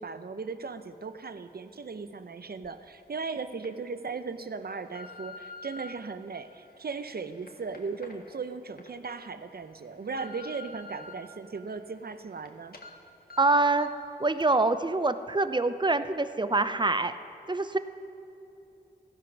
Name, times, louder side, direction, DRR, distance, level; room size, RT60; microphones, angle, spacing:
voice 1, 0.0-12.8, right 4 dB, 60° right, 11 dB, 0.8 m, -37 dB
sound 1, 2.6-2.7 3.4-3.7 4.3-5.9 6.6-8.9 9.3-9.4 9.8-11.1 11.6-12.5 12.7-12.9 13.3-13.4 13.8-14.0 14.4-14.5, left 3 dB, 55° left, 1.7 m, -47 dB
voice 2, 13.4-13.9 14.2-17.1 17.5-17.8, right 3 dB, 25° right, 11 dB, 0.7 m, -25 dB
16.0 x 11.0 x 6.1 m, 2.7 s
cardioid pair, 45°, 18 cm